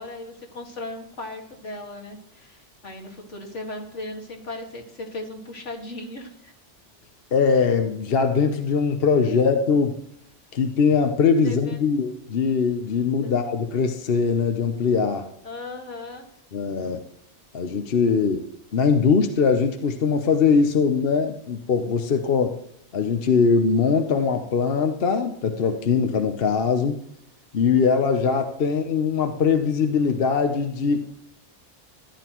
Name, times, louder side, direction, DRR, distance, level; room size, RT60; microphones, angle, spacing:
voice 1, 0.0-6.5 11.4-11.9 13.2-13.3 15.4-16.3, left 2 dB, 80° left, 1 dB, 2.4 m, -37 dB
voice 2, 7.3-10.0 10.5-15.3 16.5-17.0 17.5-18.5 18.7-22.6 22.9-27.0 27.5-31.1, left 5 dB, 55° left, 6 dB, 1.1 m, -21 dB
14.5 x 11.0 x 3.0 m, 0.72 s
omnidirectional pair, 1.2 m